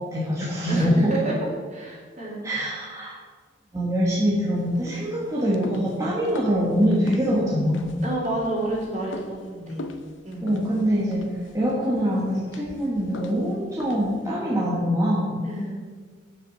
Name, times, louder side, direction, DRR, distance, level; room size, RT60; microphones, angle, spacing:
voice 1, 0.0-1.1 2.4-3.2 3.7-8.0 10.4-15.5, equal, 15° right, -6 dB, 1.3 m, -24 dB
voice 2, 0.7-2.5 8.0-9.8 10.2-10.5 15.4-15.8, right 1 dB, 40° right, -4 dB, 2.6 m, -29 dB
sound 1, 4.6-14.3, left 2 dB, 75° left, 0.7 m, -42 dB
7.5 x 6.0 x 6.5 m, 1.5 s
head